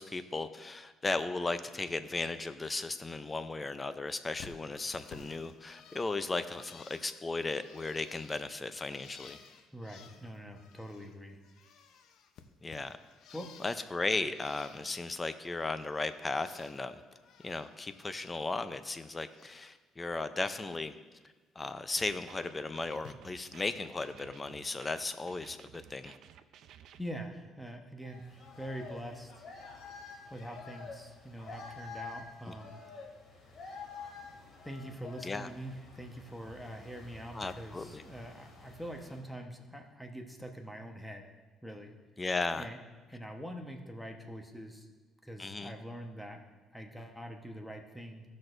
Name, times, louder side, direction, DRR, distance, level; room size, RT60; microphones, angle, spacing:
voice 1, 0.0-9.4 12.6-13.0 13.6-17.0 17.4-21.0 21.6-26.1 35.2-35.5 37.3-38.0 42.2-42.7 45.4-45.7, left 3 dB, 20° left, 11 dB, 0.5 m, -36 dB
Bird, 4.4-11.2 11.4-13.9 14.3-15.1 15.5-16.8 17.1-18.4 18.7-19.7 20.1-20.5 21.8-21.9 22.9-23.1, left 7 dB, 70° left, 0.7 m, -56 dB
voice 2, 9.7-11.4 13.3-13.5 27.0-29.4 30.3-32.8 34.6-41.2 41.6-41.9 42.6-42.8 43.1-44.9 45.2-46.4 46.7-48.2, equal, 5° left, 3 dB, 1.1 m, -44 dB
sound 1, 22.0-27.0, right 10 dB, 70° right, 0.4 m, -56 dB
sound 2, 28.0-39.2, left 4 dB, 50° left, 2.4 m, -49 dB
15.5 x 6.2 x 2.6 m, 1.3 s
cardioid pair, 100°, 0 cm